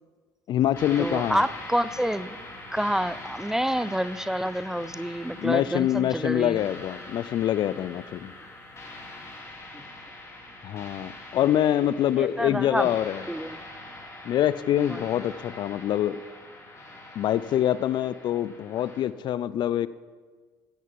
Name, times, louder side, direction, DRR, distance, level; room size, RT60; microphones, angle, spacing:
voice 1, 0.5-1.4 5.4-8.3 10.6-13.2 14.3-16.2 17.2-19.9, left 11 dB, 50° left, 17 dB, 0.5 m, -25 dB
sound 1, 0.7-19.0, left 1 dB, 30° left, 2.9 m, -43 dB
voice 2, 1.0-2.4 2.7-6.6 9.7-9.8 11.8-11.9 12.2-12.9 13.3-13.6 14.9-15.1, equal, 5° right, 16 dB, 0.4 m, -28 dB
15.5 x 8.2 x 4.7 m, 1.5 s
hypercardioid pair, 65°, 10 cm